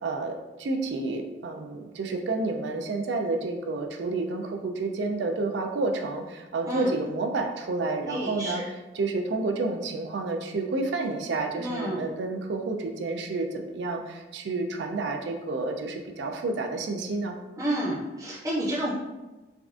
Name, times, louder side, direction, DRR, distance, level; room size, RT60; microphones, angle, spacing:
voice 1, 0.0-17.4, right 3 dB, 70° right, 4 dB, 0.4 m, -30 dB
voice 2, 8.0-8.6 11.6-12.1 17.6-18.9, right 1 dB, 20° right, -6 dB, 0.6 m, -30 dB
3.4 x 2.4 x 2.4 m, 1.1 s
head